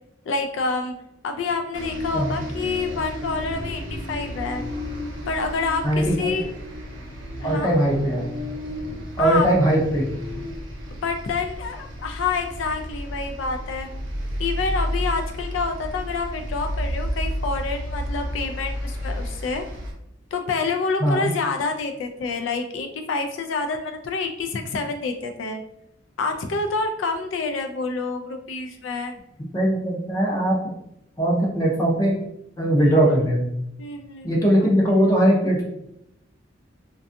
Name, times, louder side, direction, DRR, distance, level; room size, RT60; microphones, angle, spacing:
voice 1, 0.3-1.0 1.2-4.7 5.3-6.5 7.4-7.8 9.2-9.5 11.0-13.9 14.4-19.6 20.3-25.6 26.2-29.1 32.9-33.0 33.8-34.3 34.9-35.1, left 4 dB, 75° left, 5 dB, 0.3 m, -27 dB
sound 1, 1.7-19.9, equal, 80° right, 0.7 m, -32 dB
voice 2, 5.8-6.4 7.4-8.3 9.2-10.1 21.0-21.3 29.5-30.6 31.2-32.2 32.6-33.4 34.2-35.6, right 1 dB, 20° left, -3 dB, 0.5 m, -20 dB
2.6 x 2.2 x 2.5 m, 0.78 s
head